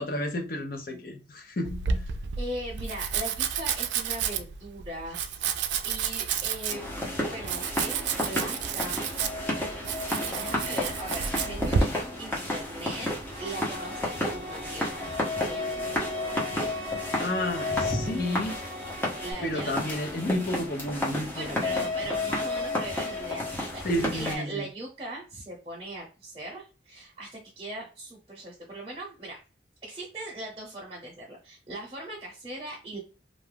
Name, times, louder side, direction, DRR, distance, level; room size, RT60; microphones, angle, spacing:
voice 1, 0.0-2.0 17.2-18.6 19.4-21.9 23.8-24.6, left 1 dB, 55° left, 0.6 m, -31 dB
Domestic sounds home sounds, 1.6-11.8, right 7 dB, 85° right, 0.3 m, -31 dB
voice 2, 2.4-5.5 5.8-6.9 7.3-9.5 10.0-11.9 12.2-16.1 19.2-19.8 21.3-29.4 29.8-33.0, right 1 dB, 30° right, 0.9 m, -39 dB
sound 1, 6.7-24.3, left 1 dB, 10° left, 0.8 m, -32 dB
sound 2, 13.3-19.3, right 2 dB, 70° right, 0.7 m, -41 dB
2.5 x 2.3 x 3.3 m
head